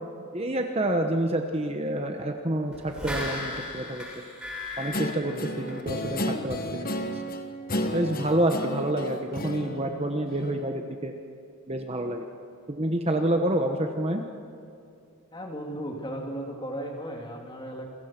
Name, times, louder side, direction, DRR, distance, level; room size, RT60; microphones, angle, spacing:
voice 1, 0.3-4.1 4.8-7.2 7.9-11.1 11.7-12.3 12.7-14.2, right 1 dB, 25° right, 4 dB, 1.1 m, -28 dB
sound 1, 2.7-6.2 6.6-6.7, left 2 dB, 5° right, 7.6 m, -36 dB
Guitar, 4.9-10.7, left 1 dB, 40° left, 1.3 m, -33 dB
voice 2, 15.3-17.9, equal, 20° left, 1 dB, 3.1 m, -35 dB
28.5 x 23.0 x 6.1 m, 2.6 s
head